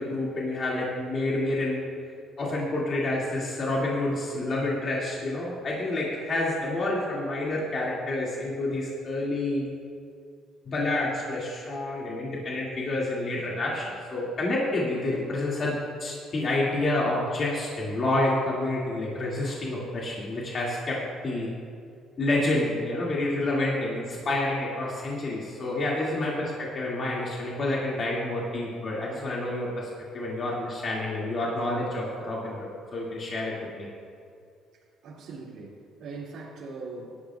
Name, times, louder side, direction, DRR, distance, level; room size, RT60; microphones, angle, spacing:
voice 1, 0.0-1.8 2.4-9.7 10.7-21.5 22.2-29.9 30.1-33.9, left 2 dB, 40° left, -5 dB, 2.1 m, -28 dB
voice 2, 35.0-37.1, right 3 dB, 70° right, -8 dB, 2.3 m, -40 dB
17.5 x 11.5 x 2.3 m, 2.3 s
cardioid pair, 115°, 0 cm